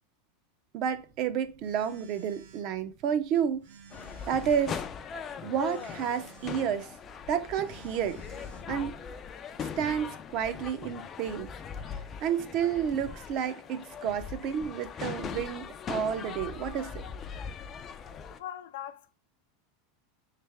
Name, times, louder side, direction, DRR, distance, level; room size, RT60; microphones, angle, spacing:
voice 1, 0.7-3.6 4.3-4.8 5.4-6.9 7.3-8.2 8.7-8.9 9.8-11.5 12.2-17.0, right 8 dB, 40° right, 0.5 m, -30 dB
Telephone, 0.8-9.3, right 6 dB, 70° right, 1.0 m, -55 dB
sound 1, 3.9-18.4, left 7 dB, 25° left, 0.4 m, -40 dB
voice 2, 18.4-19.1, left 11 dB, 80° left, 0.6 m, -40 dB
3.6 x 3.3 x 3.3 m
supercardioid pair, 155°, 0 cm